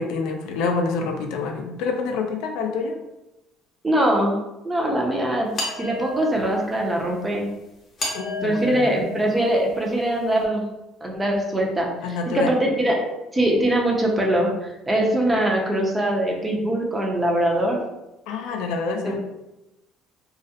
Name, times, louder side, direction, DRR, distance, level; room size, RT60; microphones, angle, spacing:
voice 1, 0.0-3.0 8.1-8.9 12.0-12.5 18.3-19.2, left 4 dB, 80° left, 3 dB, 0.3 m, -27 dB
voice 2, 3.8-4.3 4.6-7.5 8.4-10.6 11.0-11.9 12.3-13.0 13.3-14.5 14.9-17.8 19.0-19.2, right 1 dB, 15° right, -1 dB, 0.5 m, -22 dB
sound 1, 5.6-6.7 8.0-9.9, left 2 dB, 35° left, 0.7 m, -32 dB
2.3 x 2.0 x 2.7 m, 0.95 s
cardioid pair, 130°, 0 cm